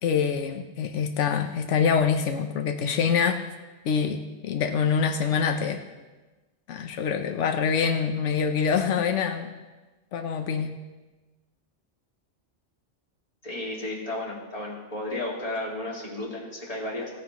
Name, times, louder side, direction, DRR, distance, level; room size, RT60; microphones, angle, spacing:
voice 1, 0.0-3.4 3.8-5.8 6.7-9.5 10.1-10.7, left 6 dB, 90° left, 5 dB, 1.0 m, -25 dB
voice 2, 13.4-17.1, left 2 dB, 30° left, -4 dB, 2.3 m, -33 dB
17.0 x 9.2 x 3.0 m, 1.2 s
omnidirectional pair, 1.2 m